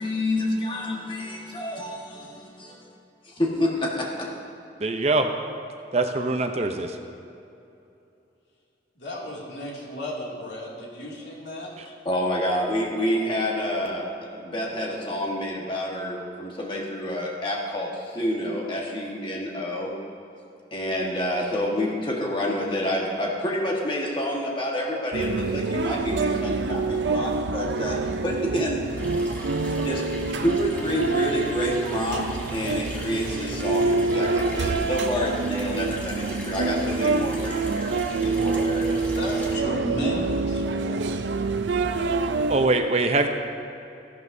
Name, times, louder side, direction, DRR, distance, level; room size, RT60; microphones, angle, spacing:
voice 1, 0.0-2.9 3.2-4.3 12.0-14.1 14.4-19.9 20.7-29.1 29.8-30.0 30.4-39.1, left 1 dB, 30° left, -2 dB, 1.5 m, -28 dB
voice 2, 4.8-5.3 5.9-7.0 42.5-43.3, right 2 dB, 35° right, 5 dB, 0.6 m, -23 dB
voice 3, 9.0-11.7 29.4-29.5 39.0-41.1, left 1 dB, 85° left, -4 dB, 2.5 m, -34 dB
sound 1, 25.1-42.7, right 3 dB, 80° right, 0.5 m, -26 dB
Water tap faucet / Sink (filling or washing), 29.0-39.6, equal, 10° left, 1.3 m, -41 dB
15.0 x 11.5 x 2.7 m, 2.8 s
head